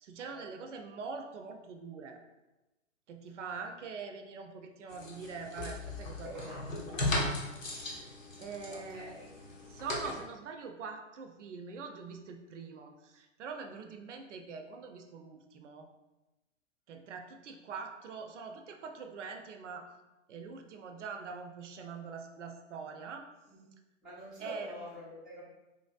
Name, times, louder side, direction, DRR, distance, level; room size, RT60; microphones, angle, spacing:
voice 1, 0.0-2.2 3.1-6.6 6.8-7.2 7.7-9.2 9.7-15.9 16.9-19.9 20.3-23.3 24.4-24.7, right 5 dB, 65° right, 5 dB, 0.5 m, -44 dB
sound 1, 4.9-10.2, left 2 dB, 90° left, 0.8 m, -37 dB
voice 2, 6.2-6.7 8.6-9.3 23.5-23.6 24.0-25.4, equal, ahead, -12 dB, 0.4 m, -47 dB
2.9 x 2.6 x 2.4 m, 1.0 s
figure-of-eight pair, 120°, 38 cm